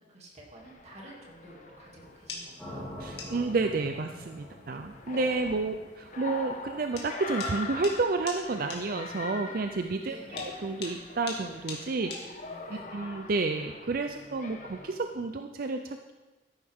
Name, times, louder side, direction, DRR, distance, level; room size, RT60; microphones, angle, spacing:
voice 1, 0.0-2.9 5.4-5.7 10.0-10.5 12.7-12.9, equal, 40° right, -3 dB, 2.6 m, -50 dB
sound 1, 0.6-15.0, left 3 dB, 45° left, 1.3 m, -43 dB
sound 2, 2.0-12.8, left 4 dB, 65° left, 2.4 m, -45 dB
sound 3, 2.6-6.7, equal, 10° left, 2.9 m, -45 dB
voice 2, 3.0-10.2 10.4-12.1 12.7-16.1, right 3 dB, 55° right, 6 dB, 0.5 m, -30 dB
13.5 x 11.0 x 3.6 m, 1.2 s
head